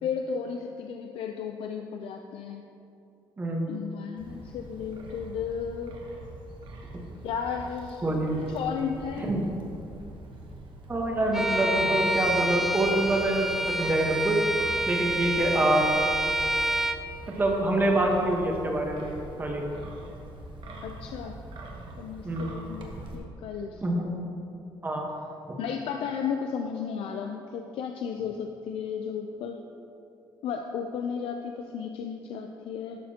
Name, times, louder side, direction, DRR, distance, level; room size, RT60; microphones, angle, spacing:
voice 1, 0.0-2.6 3.7-6.0 7.2-8.1 8.4-9.3 20.8-21.3 22.0-23.8 25.6-29.6 30.4-33.0, left 7 dB, 80° left, 4 dB, 0.5 m, -34 dB
voice 2, 3.4-3.7 8.0-8.3 9.2-9.4 10.9-14.4 14.9-15.8 17.3-19.6 22.2-22.5 23.8-24.1 24.8-25.1 25.5-25.6, right 1 dB, 20° right, 0 dB, 1.2 m, -26 dB
Wind, 4.2-23.2, right 1 dB, 60° right, 1.1 m, -44 dB
Bowed string instrument, 11.3-17.0, right 1 dB, 5° right, 0.3 m, -28 dB
11.5 x 6.7 x 2.9 m, 2.7 s
cardioid pair, 140°, 9 cm